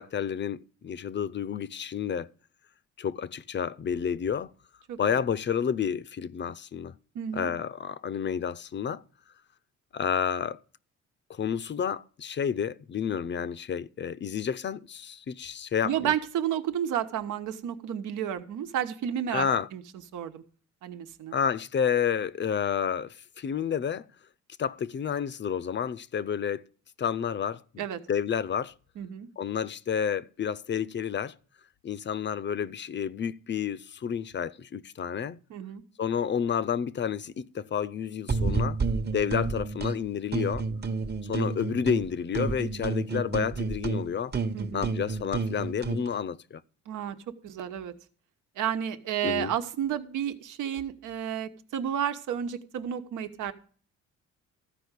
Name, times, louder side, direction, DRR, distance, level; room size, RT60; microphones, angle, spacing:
voice 1, 0.0-2.3 3.0-4.5 5.0-6.9 7.3-9.0 9.9-10.6 11.3-16.1 19.3-19.7 21.3-24.1 24.6-26.6 27.0-28.7 29.4-31.4 31.8-35.4 36.0-38.8 39.1-40.7 41.2-44.3 44.7-46.6 49.2-49.5, left 7 dB, 40° left, 0.6 m, -30 dB
voice 2, 7.1-7.5 15.8-19.8 20.1-20.4 20.8-21.3 27.8-28.0 29.0-29.3 35.5-35.8 44.5-44.9 46.9-47.2 47.4-47.9 48.6-53.5, right 9 dB, 80° right, 1.2 m, -31 dB
sound 1, 38.3-40.0 40.3-42.1 42.3-46.1, right 4 dB, 35° right, 1.0 m, -30 dB
14.0 x 5.0 x 8.2 m
cardioid pair, 90°, 30 cm